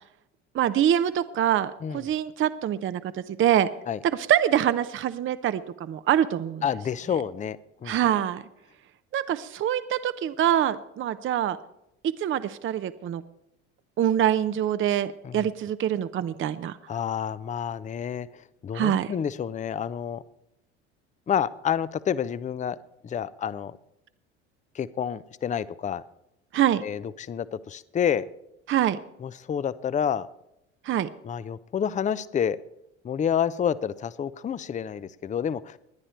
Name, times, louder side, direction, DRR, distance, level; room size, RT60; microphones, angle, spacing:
voice 1, 0.5-3.7 4.0-6.7 7.8-8.4 9.1-11.6 12.0-13.2 14.0-16.8 18.7-19.1 26.5-26.8 28.7-29.0 30.8-31.1, right 10 dB, 35° right, 13 dB, 0.7 m, -25 dB
voice 2, 6.6-8.0 15.2-15.4 16.9-18.3 18.6-20.2 21.3-22.8 23.0-23.8 24.7-26.0 26.8-28.3 29.2-30.3 31.2-32.6 33.0-35.8, left 8 dB, 20° left, 17 dB, 0.5 m, -29 dB
20.5 x 10.0 x 4.5 m, 0.84 s
hypercardioid pair, 70°, 35 cm